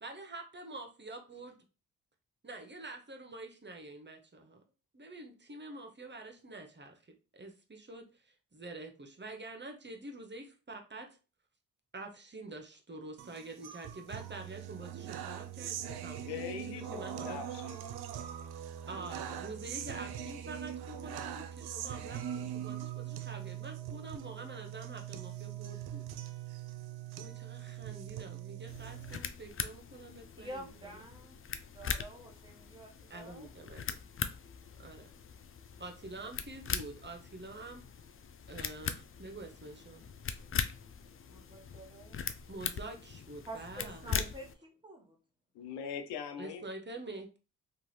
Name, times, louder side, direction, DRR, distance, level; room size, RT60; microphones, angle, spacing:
voice 1, 0.0-1.5 2.4-4.6 4.9-7.0 7.3-11.2 11.9-17.4 18.9-26.0 27.2-31.0 33.1-34.0 34.8-35.1 35.8-37.8 38.5-40.0 42.5-44.3 46.4-47.4, right 2 dB, 25° right, 0.8 m, -47 dB
sound 1, 13.2-29.2, right 10 dB, 70° right, 0.5 m, -42 dB
voice 2, 16.3-17.8 45.5-46.7, left 8 dB, 90° left, 0.6 m, -41 dB
sound 2, 28.7-44.5, left 7 dB, 35° left, 0.4 m, -41 dB
voice 3, 30.4-33.5 41.3-42.2 43.4-45.2, right 1 dB, 10° right, 1.2 m, -48 dB
2.7 x 2.4 x 3.1 m
supercardioid pair, 45°, 40 cm